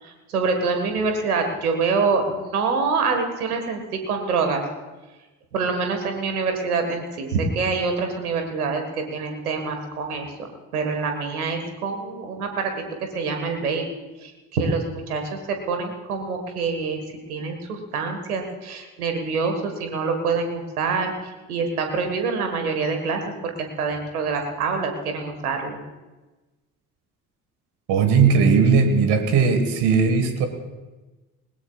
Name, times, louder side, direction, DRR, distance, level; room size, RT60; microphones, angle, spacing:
voice 1, 0.0-4.6 5.5-10.5 10.7-12.7 13.1-13.9 14.2-17.0 17.3-21.1 21.5-25.8, right 4 dB, 85° right, 5 dB, 1.7 m, -26 dB
voice 2, 27.9-30.5, right 5 dB, 65° right, 6 dB, 1.7 m, -18 dB
20.5 x 20.0 x 2.4 m, 1.2 s
figure-of-eight pair, 45°, 43 cm